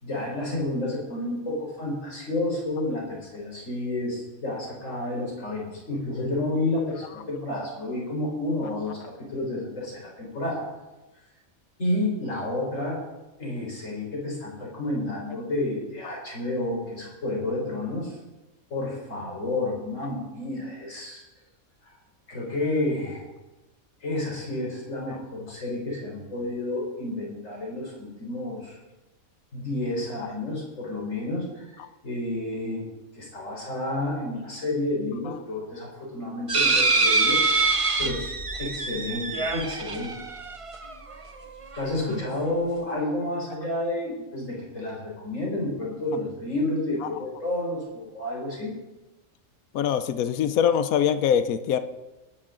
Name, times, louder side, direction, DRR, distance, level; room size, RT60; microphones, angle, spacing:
voice 1, 0.0-10.6 11.8-13.0 13.4-18.2 18.7-21.2 21.8-21.9 22.3-23.2 24.0-28.8 29.5-32.9 33.1-38.3 38.6-40.2 41.7-48.7, left 2 dB, 60° left, -3 dB, 4.9 m, -30 dB
sound 1, 36.5-41.1 41.7-41.8 42.1-42.2, right 3 dB, 30° right, 0.8 m, -24 dB
voice 2, 49.7-51.8, left 8 dB, 80° left, 11 dB, 1.2 m, -23 dB
20.0 x 10.5 x 3.9 m, 1.1 s
omnidirectional pair, 1.5 m